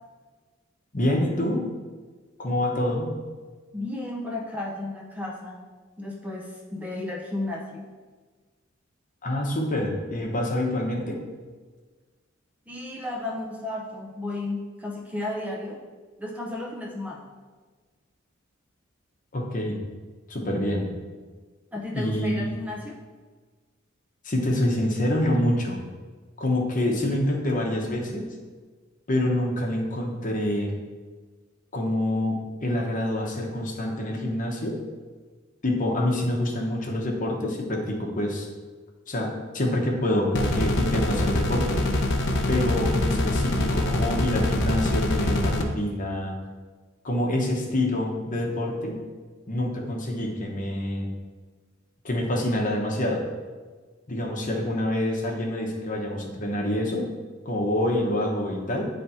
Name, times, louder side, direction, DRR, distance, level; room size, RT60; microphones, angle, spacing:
voice 1, 0.9-1.6 2.4-3.1 9.2-11.2 19.3-19.8 20.3-20.9 21.9-22.6 24.2-25.8 26.4-28.3 29.1-30.7 31.7-34.8 35.6-38.5 39.1-41.8 42.5-46.3 47.0-49.0 49.5-51.1 52.0-53.2 54.1-57.0 57.4-58.9, left 1 dB, 40° left, 0 dB, 1.0 m, -26 dB
voice 2, 3.7-5.6 6.0-7.9 12.7-15.8 16.2-17.2 21.7-23.0, left 2 dB, 5° right, -1 dB, 0.7 m, -33 dB
sound 1, 40.3-45.6, left 1 dB, 60° left, 0.7 m, -24 dB
9.1 x 3.3 x 4.2 m, 1.4 s
head